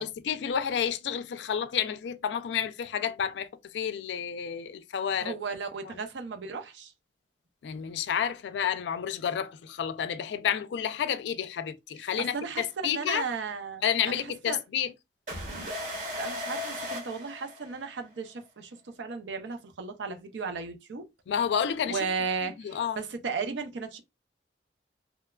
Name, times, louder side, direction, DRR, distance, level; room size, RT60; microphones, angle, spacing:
voice 1, 0.0-3.5 3.7-5.3 7.6-13.2 13.8-14.9 21.3-22.0 22.6-23.0, left 8 dB, 75° left, 0.3 m, -30 dB
voice 2, 5.2-6.9 12.2-14.6 16.2-21.1 21.9-24.0, right 5 dB, 85° right, 0.5 m, -35 dB
sound 1, 15.3-18.1, left 1 dB, 45° right, 1.0 m, -36 dB
3.0 x 2.2 x 2.2 m
head